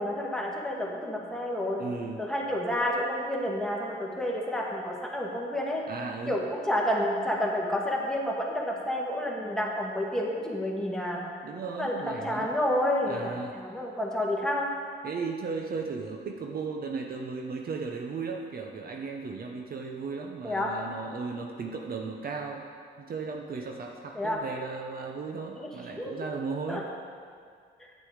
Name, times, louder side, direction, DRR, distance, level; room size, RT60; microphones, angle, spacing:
voice 1, 0.0-1.8 2.2-5.8 6.3-11.3 11.8-14.7 20.4-20.7 24.2-24.4 25.6-25.7 26.0-26.1 26.7-26.8, left 1 dB, 5° left, -2 dB, 1.8 m, -30 dB
voice 2, 1.8-2.2 5.9-6.4 11.4-12.5 13.1-13.6 15.0-22.7 23.0-26.9, right 4 dB, 50° right, 2 dB, 0.9 m, -36 dB
8.8 x 8.4 x 5.0 m, 2.1 s
cardioid pair, 90°, 20 cm